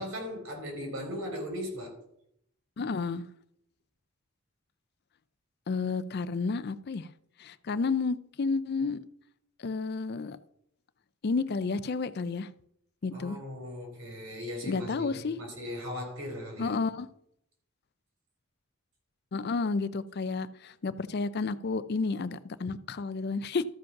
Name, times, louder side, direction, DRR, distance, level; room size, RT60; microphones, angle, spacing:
voice 1, 0.0-1.9 13.1-16.8, left 1 dB, 75° right, 1 dB, 4.5 m, -38 dB
voice 2, 2.8-3.2 5.7-7.1 7.4-9.0 9.6-10.4 11.2-12.5 13.0-13.4 14.6-15.4 16.6-17.1 19.3-23.6, left 4 dB, 50° left, 15 dB, 0.4 m, -31 dB
13.0 x 5.2 x 5.8 m, 0.73 s
head